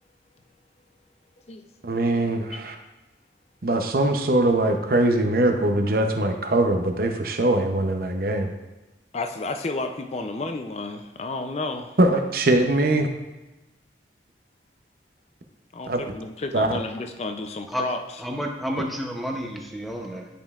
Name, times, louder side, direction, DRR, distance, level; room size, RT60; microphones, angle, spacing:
voice 1, 1.8-2.7 3.6-8.5 12.0-13.1 15.9-16.0 16.5-16.7, right 1 dB, 55° right, 5 dB, 0.7 m, -22 dB
voice 2, 9.1-12.0 15.7-18.0, left 2 dB, 35° left, 6 dB, 0.5 m, -31 dB
voice 3, 18.2-20.3, equal, ahead, 1 dB, 0.7 m, -30 dB
10.0 x 5.3 x 2.4 m, 1.1 s
head